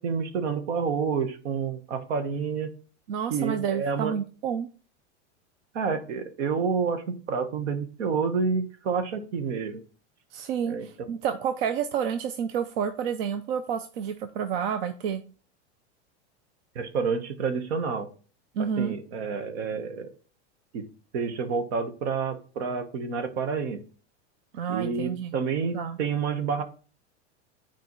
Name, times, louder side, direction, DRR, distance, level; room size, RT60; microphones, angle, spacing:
voice 1, 0.0-2.7 3.3-4.1 5.7-9.8 10.6-10.9 16.7-18.1 18.8-20.1 20.7-20.9 21.1-23.8 24.7-26.6, right 5 dB, 70° right, 8 dB, 1.2 m, -29 dB
voice 2, 3.1-4.7 10.3-15.2 18.5-18.9 24.5-25.3 25.7-26.0, right 7 dB, 55° right, 9 dB, 0.6 m, -29 dB
9.6 x 4.5 x 3.1 m, 0.39 s
supercardioid pair, 160°, 35 cm